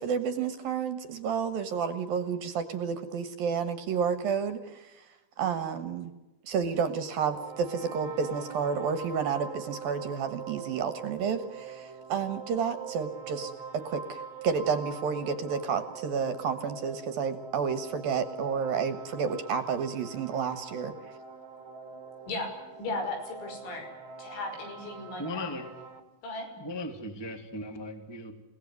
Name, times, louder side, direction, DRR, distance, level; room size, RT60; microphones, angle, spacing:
voice 1, 0.0-4.9 5.4-6.1 6.5-13.5 13.8-20.9, right 6 dB, 65° right, 12 dB, 2.8 m, -30 dB
sound 1, 7.2-26.0, right 6 dB, 35° right, 2.1 m, -44 dB
voice 2, 22.8-23.9 24.2-25.5 26.2-26.5, left 2 dB, 80° left, 4 dB, 8.0 m, -36 dB
voice 3, 25.2-25.8 26.6-28.3, left 1 dB, 10° left, 8 dB, 1.6 m, -37 dB
29.0 x 18.5 x 9.5 m, 1.1 s
omnidirectional pair, 5.3 m